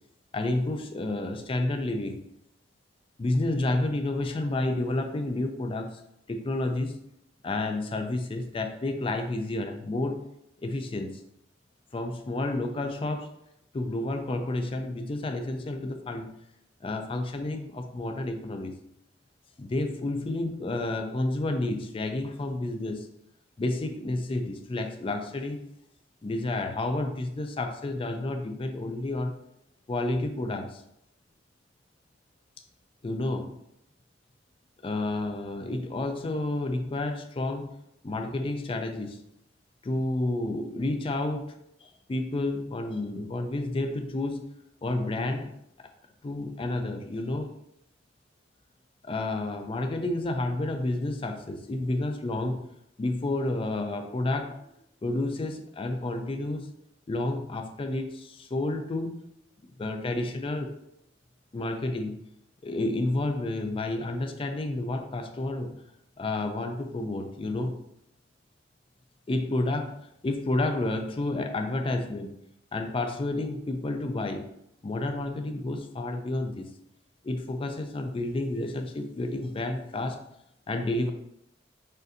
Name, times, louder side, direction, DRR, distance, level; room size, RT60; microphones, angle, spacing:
voice 1, 0.3-2.2 3.2-6.0 6.3-7.0 7.4-10.3 10.6-11.2 11.9-13.4 13.7-16.3 16.8-18.7 19.6-23.1 23.6-25.6 26.2-29.4 29.9-30.8 33.0-33.6 34.8-37.7 38.0-39.2 39.8-41.5 41.8-44.5 44.8-45.5 46.2-47.6 49.0-52.6 53.0-54.7 55.0-56.7 57.1-59.2 59.8-60.7 61.5-62.1 62.6-65.8 66.2-67.8 69.3-70.0 70.2-72.4 72.7-74.5 74.8-76.7 77.2-80.2 80.7-81.1, left 2 dB, 30° left, 6 dB, 0.4 m, -30 dB
6.4 x 2.6 x 2.6 m, 0.79 s
head